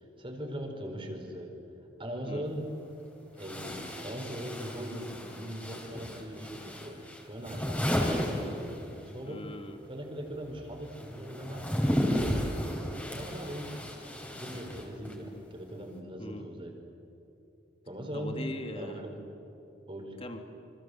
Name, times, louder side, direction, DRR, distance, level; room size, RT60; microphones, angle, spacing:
voice 1, 0.0-1.5 2.0-2.7 3.3-9.4 9.9-12.8 13.1-13.7 14.3-16.7 17.9-18.4 18.8-19.2 19.9-20.2, equal, 30° right, 2 dB, 4.4 m, -40 dB
sound 1, 2.5-2.6 3.4-9.2 9.4-15.3, equal, 10° left, 4.2 m, -34 dB
voice 2, 9.3-9.8 16.2-16.5 18.1-19.0 20.2-20.4, left 1 dB, 30° left, 5 dB, 2.6 m, -40 dB
27.5 x 25.5 x 7.9 m, 3.0 s
head